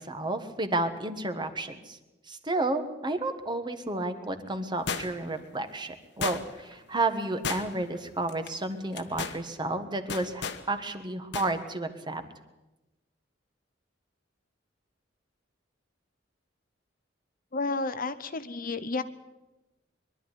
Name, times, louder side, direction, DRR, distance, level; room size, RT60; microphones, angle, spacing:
voice 1, 0.0-2.0 2.3-12.2, right 2 dB, 25° right, 8 dB, 1.5 m, -31 dB
sound 1, 4.9-5.4 6.2-6.7 7.4-8.0 8.3-8.5 8.9-9.4 10.1-10.6 11.3-11.5 11.8-11.9, left 5 dB, 65° left, 1.3 m, -33 dB
voice 2, 17.5-19.0, left 3 dB, 45° left, 12 dB, 0.9 m, -31 dB
22.5 x 12.0 x 9.9 m, 1.0 s
head